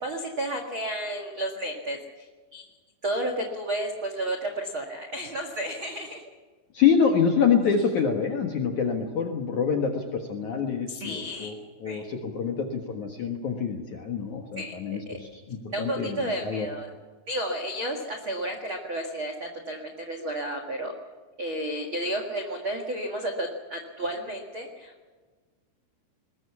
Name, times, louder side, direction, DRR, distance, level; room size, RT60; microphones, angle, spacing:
voice 1, 0.0-2.7 3.0-6.2 10.9-11.5 11.8-12.1 14.6-15.2 15.7-16.9 17.3-20.9 21.4-25.1, right 1 dB, 55° right, 3 dB, 1.4 m, -32 dB
voice 2, 6.7-16.7, left 6 dB, 60° left, 3 dB, 2.1 m, -26 dB
21.5 x 20.0 x 7.2 m, 1.4 s
omnidirectional pair, 5.6 m